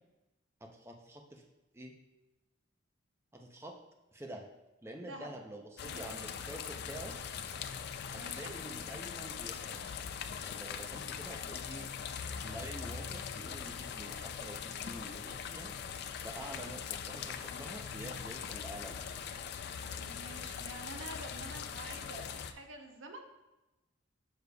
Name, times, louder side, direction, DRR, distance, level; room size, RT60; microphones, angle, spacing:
voice 1, 0.6-1.4 1.7-1.9 3.3-3.7 4.1-4.4 4.8-7.1 8.1-9.9 10.4-11.9 12.4-19.0, right 1 dB, 15° right, 2 dB, 0.5 m, -47 dB
sound 1, 5.8-22.5, left 7 dB, 55° left, 0.3 m, -41 dB
voice 2, 5.8-6.2 8.1-8.5 19.9-23.3, right 2 dB, 75° right, 4 dB, 0.7 m, -48 dB
6.7 x 6.4 x 2.3 m, 1.0 s
head